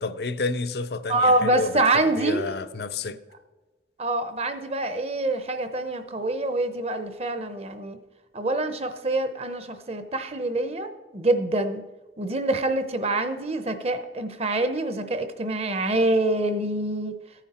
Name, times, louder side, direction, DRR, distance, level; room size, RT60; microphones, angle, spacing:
voice 1, 0.0-3.2, left 3 dB, 55° left, 0.5 m, -30 dB
voice 2, 1.1-2.5 4.0-8.0 8.3-11.8 12.2-17.1, right 2 dB, 35° right, 0.8 m, -25 dB
15.0 x 9.2 x 4.3 m
head